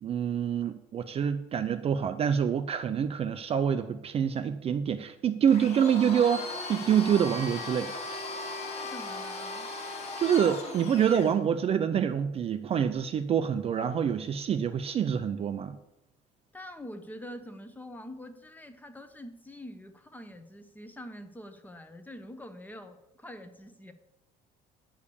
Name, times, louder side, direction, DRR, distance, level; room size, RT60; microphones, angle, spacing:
voice 1, 0.0-7.9 10.2-15.8, right 8 dB, 35° right, 10 dB, 0.5 m, -26 dB
Domestic sounds home sounds, 5.5-11.4, left 2 dB, 40° left, 1.4 m, -37 dB
voice 2, 8.7-9.7 16.5-23.9, equal, 10° left, 9 dB, 0.8 m, -45 dB
9.6 x 5.0 x 6.9 m, 0.90 s
cardioid pair, 130°, 18 cm